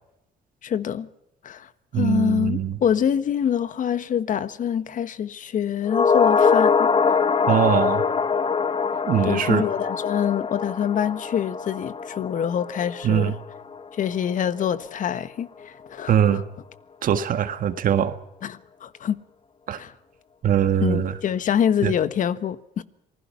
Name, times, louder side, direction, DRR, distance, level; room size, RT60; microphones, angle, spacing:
voice 1, 0.6-1.1 1.4-1.7 1.9-6.9 9.2-13.4 13.9-16.4 18.4-19.2 19.8-19.9 20.8-22.8, left 9 dB, 50° left, 1.4 m, -25 dB
voice 2, 1.9-2.8 7.5-8.0 9.1-9.6 13.0-13.3 16.1-16.4 17.0-18.1 19.7-19.8 20.4-21.1 21.8-21.9, right 9 dB, 55° right, 1.8 m, -21 dB
sound 1, 5.9-14.3 14.6-14.7, left 5 dB, 30° left, 1.1 m, -23 dB
27.5 x 20.0 x 5.7 m
cardioid pair, 110°, 17 cm